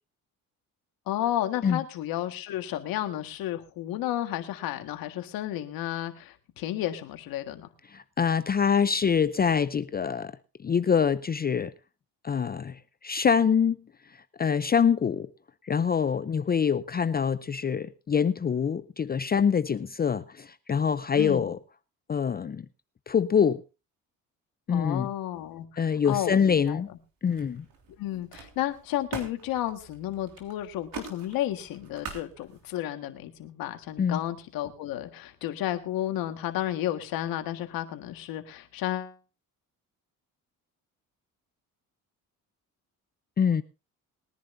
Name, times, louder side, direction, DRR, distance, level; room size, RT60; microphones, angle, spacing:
voice 1, 1.1-7.7 21.1-21.5 24.7-26.8 27.9-39.2, left 13 dB, 85° left, 1.7 m, -32 dB
voice 2, 7.9-10.3 10.6-11.7 12.2-13.8 14.4-15.3 15.6-21.6 22.1-22.7 23.1-23.6 24.7-25.1 25.8-26.9 27.2-27.6 34.0-34.2 43.4-43.6, left 7 dB, 25° left, 0.5 m, -25 dB
Camera, 26.3-27.0 27.3-32.8, right 5 dB, 80° right, 3.4 m, -44 dB
22.0 x 10.5 x 2.7 m
cardioid pair, 100°, 34 cm